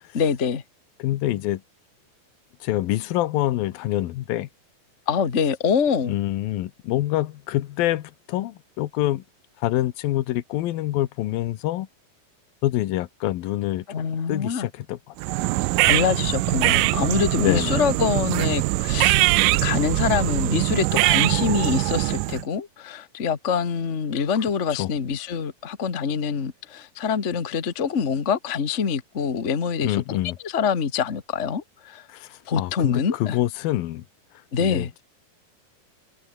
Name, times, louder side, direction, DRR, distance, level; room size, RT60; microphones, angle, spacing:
voice 1, 0.1-0.6 5.1-6.1 13.9-14.7 15.9-19.2 19.6-30.2 30.4-32.1 32.5-33.4 34.5-34.9, left 6 dB, 60° left, 0.7 m, -25 dB
voice 2, 1.0-1.6 2.6-4.5 6.0-9.2 9.6-11.9 12.6-13.9 14.3-15.4 17.4-17.8 24.7-24.9 29.8-30.4 32.1-34.0 34.6-35.0, left 15 dB, 85° left, 2.9 m, -26 dB
sound 1, 15.2-22.5, right 20 dB, 80° right, 2.1 m, -22 dB
omnidirectional pair, 4.1 m